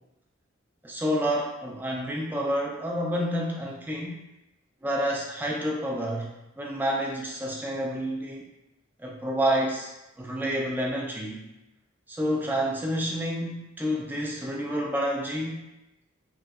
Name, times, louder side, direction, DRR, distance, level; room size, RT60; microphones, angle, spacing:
voice 1, 0.8-4.2 4.8-6.3 6.6-8.5 9.0-9.9 10.2-11.5 12.1-15.6, equal, 10° right, -1 dB, 0.3 m, -29 dB
3.0 x 2.6 x 2.3 m, 0.93 s
head